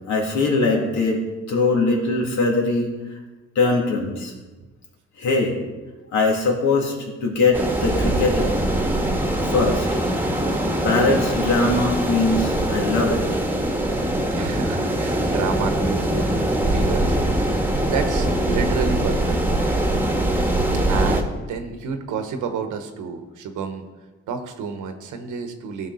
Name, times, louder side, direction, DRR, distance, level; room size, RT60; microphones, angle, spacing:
voice 1, 0.1-1.2 1.5-2.9 3.5-4.3 5.2-5.6 6.1-6.9 7.2-8.6 9.4-9.9 10.8-13.2, left 3 dB, 70° left, -1 dB, 2.8 m, -21 dB
sound 1, 7.5-21.2, right 1 dB, 5° right, 1.4 m, -22 dB
voice 2, 14.3-16.2 16.7-17.2 17.5-19.4 20.9-23.8 24.3-25.9, right 5 dB, 80° right, 7 dB, 1.2 m, -30 dB
15.5 x 5.8 x 4.1 m, 1.2 s
cardioid pair, 90°, 30 cm